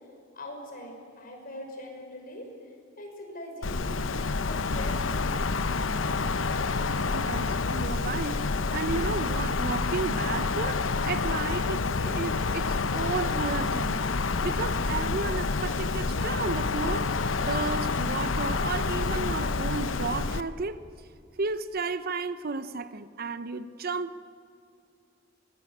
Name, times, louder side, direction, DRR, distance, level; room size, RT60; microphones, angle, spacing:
voice 1, 0.3-2.5 3.0-4.0 4.4-5.7, left 1 dB, 50° left, 6.0 m, -42 dB
Wind, 3.6-20.4, left 4 dB, 85° left, 0.9 m, -28 dB
voice 2, 7.0-14.1 14.4-17.1 17.4-20.8 21.4-24.2, right 4 dB, 50° right, 0.8 m, -33 dB
23.0 x 21.0 x 8.5 m
head